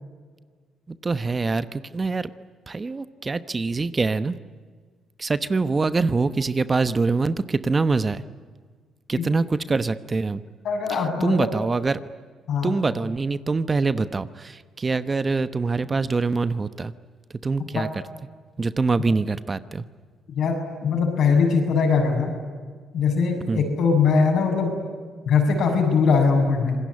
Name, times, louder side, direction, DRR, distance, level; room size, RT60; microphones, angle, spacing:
voice 1, 0.9-2.3 2.7-4.4 5.2-8.2 9.1-10.4 10.9-12.0 12.6-16.9 17.4-18.0 18.6-19.8 23.5-23.7, right 3 dB, 30° right, 13 dB, 1.0 m, -24 dB
voice 2, 10.6-11.5 12.5-12.8 17.7-17.9 20.3-20.6 20.8-22.3 22.9-24.8 25.3-26.8, left 5 dB, 65° left, 3 dB, 7.2 m, -21 dB
26.5 x 19.5 x 9.7 m, 1.5 s
cardioid pair, 85°, 0 cm